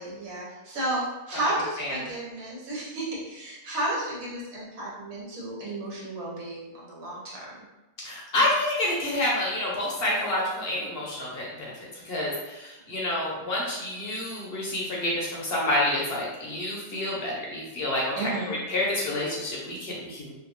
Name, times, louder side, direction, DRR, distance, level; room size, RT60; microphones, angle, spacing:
voice 1, 0.0-7.5 18.1-18.5, right 1 dB, 90° right, -5 dB, 1.3 m, -33 dB
voice 2, 8.0-20.3, left 1 dB, 60° left, -4 dB, 0.7 m, -28 dB
2.7 x 2.3 x 2.9 m, 1.1 s
omnidirectional pair, 1.4 m